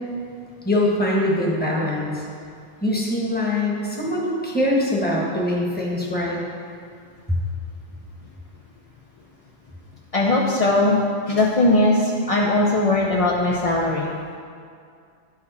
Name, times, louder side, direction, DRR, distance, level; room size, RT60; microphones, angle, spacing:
voice 1, 0.6-2.2 2.8-6.4 7.3-7.4, left 1 dB, 10° left, -4 dB, 1.1 m, -23 dB
voice 2, 10.1-14.1, left 2 dB, 45° left, -3 dB, 0.4 m, -19 dB
9.7 x 4.9 x 4.1 m, 2.3 s
omnidirectional pair, 1.3 m